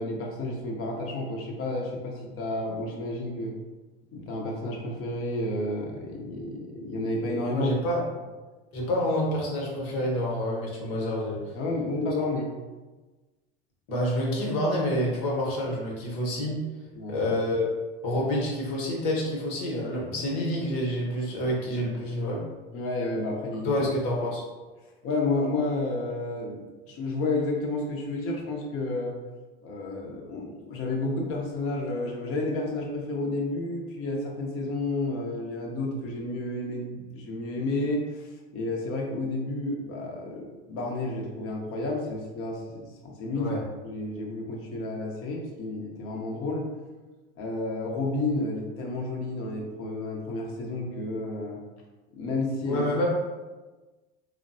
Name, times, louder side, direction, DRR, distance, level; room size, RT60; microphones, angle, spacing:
voice 1, 0.0-3.5 4.1-7.7 11.5-12.5 16.9-17.2 22.7-23.8 25.0-26.6 26.9-29.1 29.6-43.5 43.8-46.7 47.4-51.6 52.1-52.8, left 2 dB, 45° left, 0 dB, 0.8 m, -31 dB
voice 2, 7.5-8.0 8.7-11.4 13.9-16.6 17.1-17.7 18.0-22.4 23.6-24.4 43.4-43.6 52.7-53.1, left 1 dB, 70° left, -2 dB, 1.0 m, -28 dB
3.2 x 2.1 x 2.6 m, 1.2 s
hypercardioid pair, 90°, 30 cm